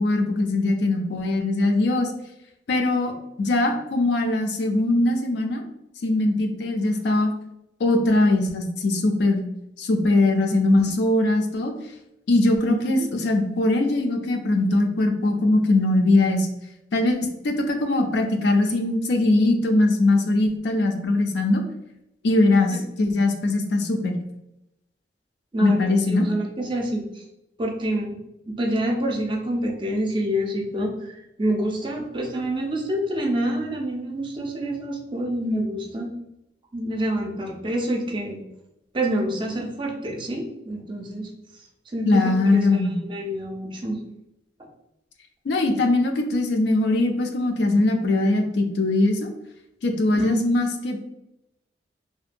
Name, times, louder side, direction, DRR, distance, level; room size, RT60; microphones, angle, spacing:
voice 1, 0.0-2.1 2.7-3.1 3.4-5.6 6.0-7.3 7.8-9.4 9.8-11.7 12.3-16.5 16.9-17.2 17.4-21.6 22.2-24.2 25.6-26.3 42.1-43.0 45.4-49.3 49.8-51.0, left 2 dB, 70° left, 4 dB, 0.4 m, -21 dB
voice 2, 26.1-27.2 27.6-28.2 28.5-36.1 36.7-38.4 38.9-41.3 41.9-44.0 50.1-50.4, right 1 dB, 30° right, 1 dB, 0.4 m, -27 dB
2.7 x 2.1 x 2.5 m, 0.86 s
head